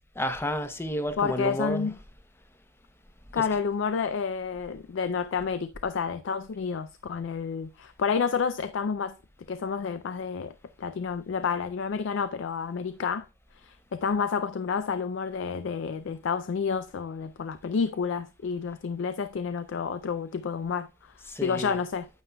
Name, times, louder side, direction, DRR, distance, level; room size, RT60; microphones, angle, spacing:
voice 1, 0.2-1.9 3.3-3.5 21.3-21.8, equal, 10° left, 0.6 m, -31 dB
voice 2, 1.2-1.9 3.3-9.1 9.5-10.5 10.8-13.3 13.6-20.9 21.4-22.1, left 6 dB, 55° left, 0.3 m, -29 dB
9.5 x 7.9 x 2.2 m
head